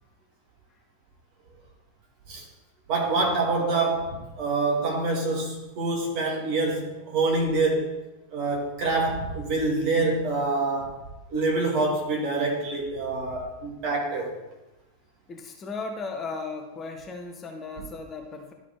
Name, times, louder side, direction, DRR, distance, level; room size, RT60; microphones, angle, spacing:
voice 1, 2.9-7.9 8.3-11.0 11.3-14.3, right 3 dB, 40° right, -1 dB, 2.4 m, -26 dB
voice 2, 15.3-18.5, left 4 dB, 25° left, 5 dB, 0.8 m, -36 dB
12.0 x 4.2 x 4.3 m, 1.0 s
figure-of-eight pair, 90°, 0 cm